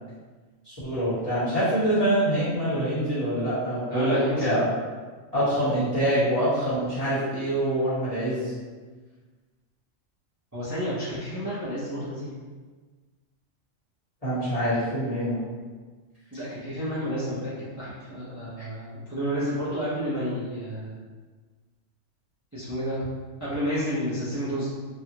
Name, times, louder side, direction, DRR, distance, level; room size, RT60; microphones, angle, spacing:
voice 1, 0.6-4.7 5.3-8.6 14.2-15.4, right 1 dB, 30° left, -12 dB, 1.4 m, -25 dB
voice 2, 3.9-4.5 10.5-12.3 16.3-21.0 22.5-23.1 23.4-24.7, equal, 15° right, -12 dB, 0.7 m, -30 dB
3.1 x 2.4 x 2.8 m, 1.4 s
omnidirectional pair, 1.4 m